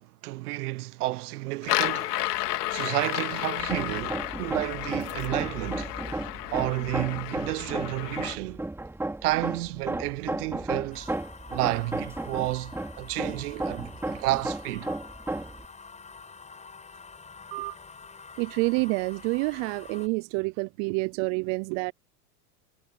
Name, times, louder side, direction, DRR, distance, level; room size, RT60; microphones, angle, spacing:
voice 1, 0.0-2.2 2.7-5.9 6.5-8.6 9.2-11.1 11.5-14.9, right 19 dB, 75° right, 1.1 m, -31 dB
sound 1, 1.6-8.4, left 15 dB, 85° left, 2.2 m, -32 dB
Hammer, 3.6-15.7, right 2 dB, 5° right, 2.5 m, -34 dB
sound 2, 10.9-20.1, left 4 dB, 15° left, 6.3 m, -47 dB
voice 2, 18.4-21.9, right 29 dB, 45° right, 0.5 m, -28 dB
supercardioid pair, 125°, 46 cm